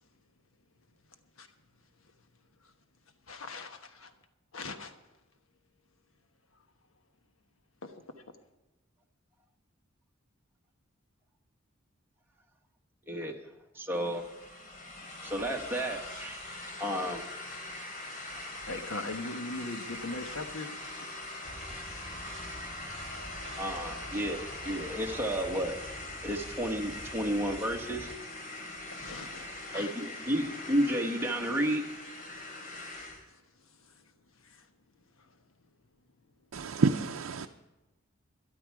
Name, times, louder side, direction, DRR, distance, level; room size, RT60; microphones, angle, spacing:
voice 1, 3.3-4.1 4.5-5.0 7.8-7.9 18.7-21.2 28.9-29.9 33.3-34.7 35.2-35.4, left 2 dB, 75° left, 1.2 m, -41 dB
voice 2, 13.1-13.4 13.7-14.2 15.2-16.5 16.8-17.2 23.6-25.7 26.2-28.1 29.7-31.8, equal, 10° right, 1.5 m, -32 dB
sound 1, 13.9-33.2, left 2 dB, 45° left, 3.1 m, -42 dB
sound 2, 21.4-28.1, right 1 dB, 30° right, 2.0 m, -48 dB
voice 3, 36.5-37.5, right 4 dB, 80° right, 0.6 m, -28 dB
13.0 x 11.5 x 4.9 m
head